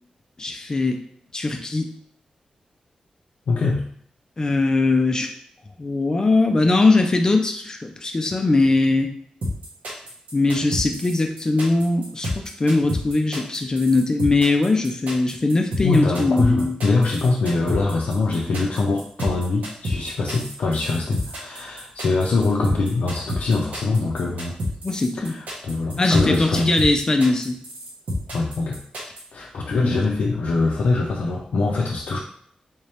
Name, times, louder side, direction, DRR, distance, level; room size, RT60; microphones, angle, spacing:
voice 1, 0.4-1.0 1.3-1.9 4.4-5.3 5.8-9.1 10.3-16.8 24.8-25.3 26.0-27.6 29.7-30.0, left 2 dB, 30° left, 5 dB, 0.5 m, -20 dB
voice 2, 3.5-3.9 15.8-24.6 25.2-26.7 28.3-28.8 29.3-32.2, left 3 dB, 80° left, -2 dB, 0.5 m, -23 dB
sound 1, 9.4-29.2, left 1 dB, 90° right, 1.2 m, -29 dB
3.5 x 2.8 x 3.3 m, 0.64 s
wide cardioid pair, 145°, 2 cm